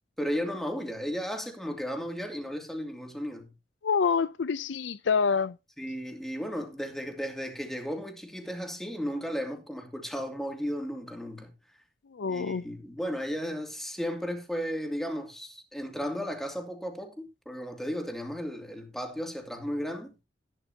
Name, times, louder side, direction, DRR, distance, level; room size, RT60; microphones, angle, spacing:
voice 1, 0.2-3.5 5.8-11.5 12.3-20.1, equal, ahead, 2.5 m, -34 dB
voice 2, 3.8-5.5 12.1-12.6, left 5 dB, 75° left, 0.5 m, -26 dB
13.5 x 11.5 x 2.8 m
head